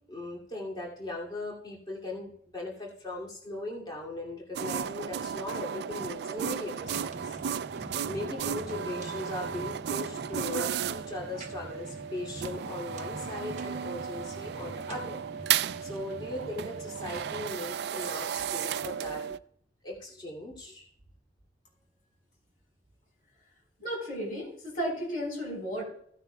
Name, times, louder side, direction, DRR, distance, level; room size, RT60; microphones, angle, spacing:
voice 1, 0.1-7.7 8.1-15.2 15.4-19.2 19.8-20.9, left 2 dB, 25° left, -3 dB, 2.5 m, -39 dB
sound 1, 4.6-19.4, right 8 dB, 65° right, 0.3 m, -34 dB
sound 2, 6.8-17.5, right 1 dB, 40° right, 0.8 m, -45 dB
voice 2, 23.8-25.8, equal, 50° left, 0 dB, 4.6 m, -34 dB
16.0 x 10.0 x 2.3 m, 0.66 s
head